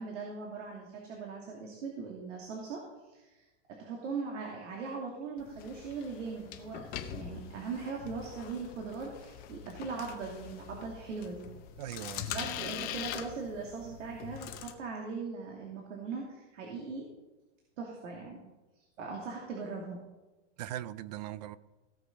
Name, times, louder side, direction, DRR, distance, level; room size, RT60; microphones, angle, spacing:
voice 1, 0.0-11.5 12.1-17.1 17.8-18.4 19.0-20.0, right 4 dB, 85° right, -1 dB, 2.8 m, -40 dB
sound 1, 5.4-14.7, left 10 dB, 25° left, 0.7 m, -43 dB
voice 2, 11.8-12.3 20.6-21.6, right 13 dB, 35° right, 18 dB, 0.4 m, -40 dB
16.5 x 6.6 x 5.2 m, 1.1 s
supercardioid pair, 165°, 36 cm